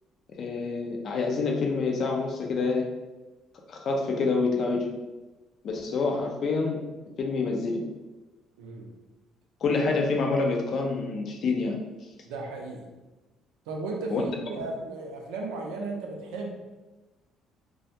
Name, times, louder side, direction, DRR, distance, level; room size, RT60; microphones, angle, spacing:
voice 1, 0.4-2.9 3.7-4.9 5.6-6.8 7.2-7.8 9.6-11.8 14.1-14.2, left 4 dB, 60° left, 1 dB, 0.4 m, -27 dB
voice 2, 12.2-12.8 13.7-16.6, right 3 dB, 90° right, 1 dB, 0.4 m, -35 dB
2.2 x 2.1 x 2.7 m, 1.1 s
supercardioid pair, 70°, 0 cm